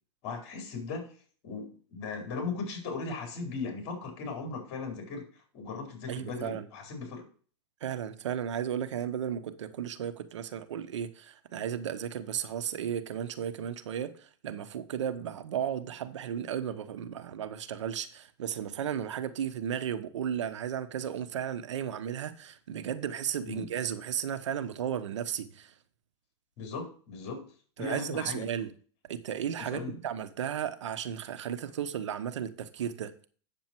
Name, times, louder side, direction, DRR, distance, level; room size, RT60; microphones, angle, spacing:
voice 1, 0.2-1.2 1.4-7.2 23.5-23.7 26.6-27.4 27.8-28.5 29.6-30.0, left 4 dB, 45° left, 4.4 m, -38 dB
voice 2, 6.1-6.7 7.8-25.7 27.8-28.7 29.1-33.1, right 9 dB, 85° right, 1.1 m, -34 dB
8.7 x 7.2 x 4.5 m
supercardioid pair, 145°, 15 cm